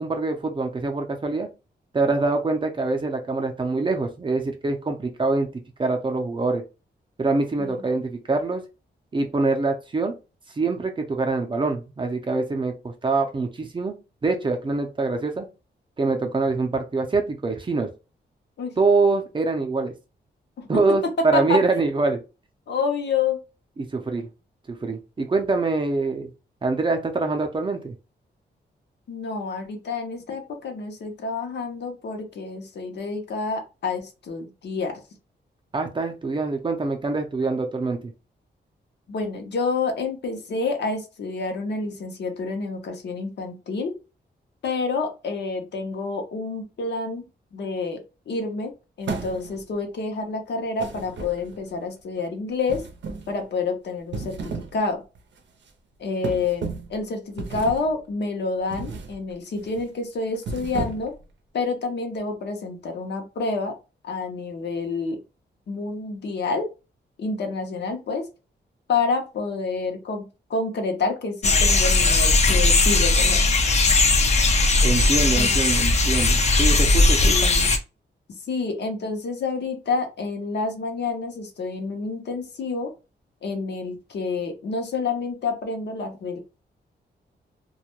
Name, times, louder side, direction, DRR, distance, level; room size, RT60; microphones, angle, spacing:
voice 1, 0.0-1.5 1.9-5.5 5.8-6.6 7.2-8.6 9.1-10.1 10.6-13.9 14.2-15.5 16.0-17.9 18.8-19.9 20.7-22.2 23.8-24.3 24.7-26.3 26.6-27.9 35.7-38.1 74.8-77.5, right 3 dB, 25° right, 4 dB, 0.5 m, -24 dB
voice 2, 22.7-23.4 29.1-35.0 39.1-43.9 44.6-47.2 47.5-48.7 49.0-52.9 53.3-55.0 56.0-61.1 61.5-63.8 64.0-65.2 65.7-66.7 67.2-68.3 68.9-70.2 70.5-73.4 75.3-75.5 77.2-77.7 78.5-82.9 83.4-86.4, left 4 dB, 70° left, 4 dB, 0.7 m, -28 dB
sound 1, 49.0-49.7 50.8-51.7 52.7-53.4 54.0-54.8 55.1-55.4 56.2-57.0 57.4-57.9 58.7-59.2 59.5-59.8 60.3-61.2, right 4 dB, 90° right, 0.5 m, -33 dB
sound 2, 71.4-77.8, left 3 dB, 40° left, 0.4 m, -18 dB
2.3 x 2.1 x 2.9 m, 0.29 s
wide cardioid pair, 150°, 18 cm